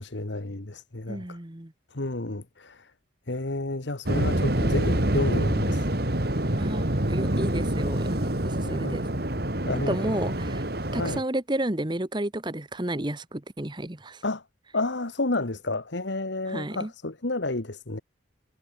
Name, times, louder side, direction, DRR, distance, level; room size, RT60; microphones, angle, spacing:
voice 1, 0.0-1.4 1.9-2.9 3.3-5.8 8.6-9.2 9.7-10.0 10.9-11.2 14.2-14.4 14.7-18.0, left 2 dB, 70° left, 1.6 m, -31 dB
voice 2, 1.1-1.7 6.6-9.1 9.9-10.6 10.9-14.2 16.5-16.9, right 1 dB, 25° right, 1.2 m, -31 dB
Waves surf, 4.1-11.2, right 1 dB, 55° right, 2.8 m, -26 dB
head